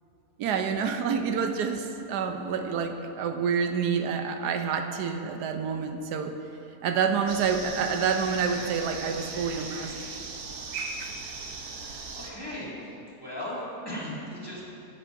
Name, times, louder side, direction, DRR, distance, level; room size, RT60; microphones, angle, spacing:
voice 1, 0.4-6.3 6.8-9.9 11.0-11.1, right 6 dB, 85° right, 6 dB, 1.2 m, -28 dB
sound 1, 7.3-12.3, right 4 dB, 65° right, 1.3 m, -38 dB
voice 2, 11.9-14.6, left 1 dB, 15° left, -8 dB, 2.2 m, -37 dB
17.0 x 8.1 x 2.6 m, 2.9 s
omnidirectional pair, 1.7 m